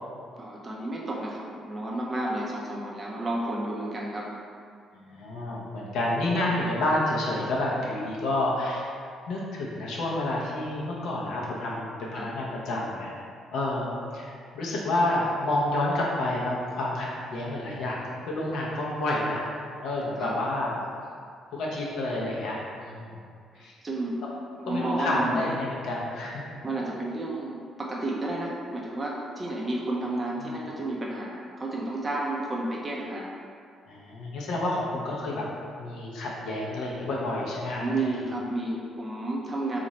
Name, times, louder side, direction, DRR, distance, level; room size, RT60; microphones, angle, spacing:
voice 1, 0.4-4.3 12.1-12.3 20.2-20.3 23.6-24.2 24.6-25.4 26.6-33.3 37.8-39.8, right 2 dB, 20° right, -4 dB, 0.4 m, -31 dB
voice 2, 4.9-8.9 9.3-13.1 13.5-18.0 18.3-19.4 19.8-20.8 21.5-23.2 23.6-23.7 24.6-26.3 30.4-30.5 33.9-35.5 35.8-38.1, left 1 dB, 75° left, -4 dB, 0.7 m, -29 dB
3.0 x 2.5 x 4.0 m, 2.2 s
cardioid pair, 140°, 0 cm